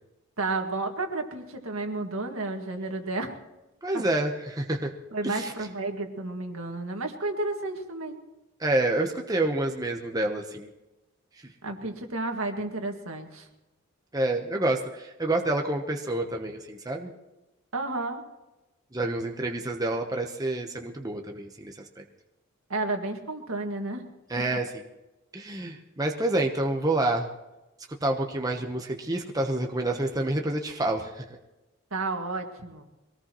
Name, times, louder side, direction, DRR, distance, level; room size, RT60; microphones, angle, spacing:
voice 1, 0.4-3.4 5.1-8.2 11.6-13.5 17.7-18.2 22.7-24.1 24.5-24.6 31.9-32.8, right 2 dB, 75° right, 3 dB, 1.9 m, -32 dB
voice 2, 3.8-4.9 5.2-5.5 8.6-10.7 11.4-11.5 14.1-17.1 18.9-21.8 24.3-24.8 25.3-27.3 28.0-31.2, right 2 dB, 15° right, 2 dB, 0.9 m, -28 dB
23.0 x 18.0 x 3.0 m, 1.0 s
head